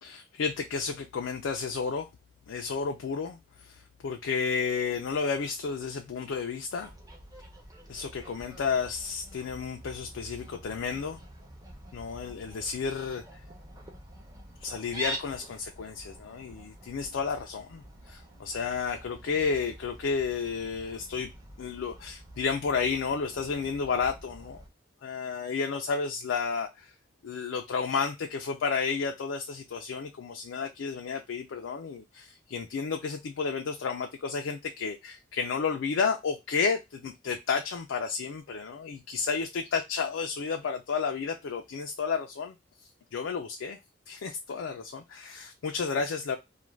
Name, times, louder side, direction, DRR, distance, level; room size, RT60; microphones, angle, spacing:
voice 1, 0.0-2.1 2.5-6.9 7.9-11.2 11.9-13.2 14.6-21.3 21.6-24.6 25.0-26.9 27.2-42.5 43.1-43.8 44.1-46.4, left 5 dB, 85° left, 0.4 m, -32 dB
Fowl, 6.8-24.7, right 1 dB, 20° right, 0.6 m, -46 dB
2.4 x 2.2 x 3.1 m
head